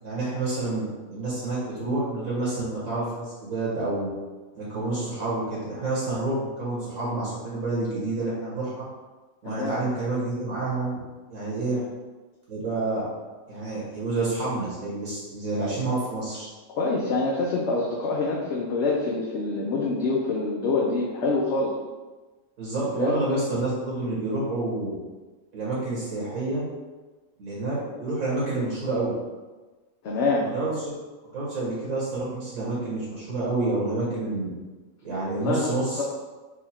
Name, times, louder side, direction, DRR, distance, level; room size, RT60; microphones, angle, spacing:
voice 1, 0.0-4.1 4.6-8.8 9.4-11.0 11.3-11.8 12.5-13.1 13.5-16.5 22.6-24.9 25.5-26.7 27.4-29.1 30.4-30.9 31.3-34.5 35.0-36.0, right 2 dB, 80° right, -7 dB, 1.9 m, -28 dB
voice 2, 9.4-9.8 11.7-11.9 16.8-21.7 23.0-23.2 30.0-30.5 35.3-36.0, left 3 dB, 60° left, -3 dB, 0.8 m, -26 dB
4.8 x 2.4 x 4.3 m, 1.2 s
omnidirectional pair, 1.4 m